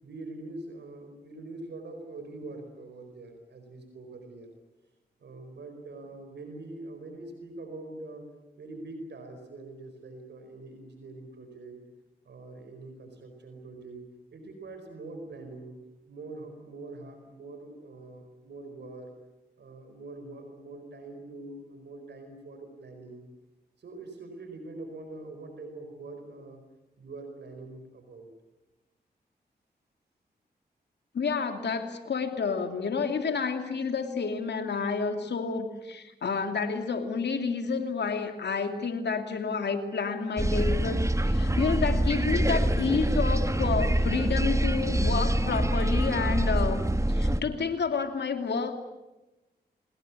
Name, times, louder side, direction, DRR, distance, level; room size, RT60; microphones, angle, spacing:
voice 1, 0.0-4.5 5.2-8.3 8.6-11.8 12.2-14.0 14.3-19.1 19.6-23.3 23.8-26.6 27.0-28.3, right 2 dB, 90° right, 6 dB, 4.7 m, -44 dB
voice 2, 31.1-46.8 47.1-48.7, left 5 dB, 80° left, 6 dB, 2.7 m, -30 dB
sound 1, 40.4-47.4, right 1 dB, 15° right, 1.7 m, -25 dB
26.5 x 20.5 x 8.4 m, 1.0 s
cardioid pair, 50°, 17 cm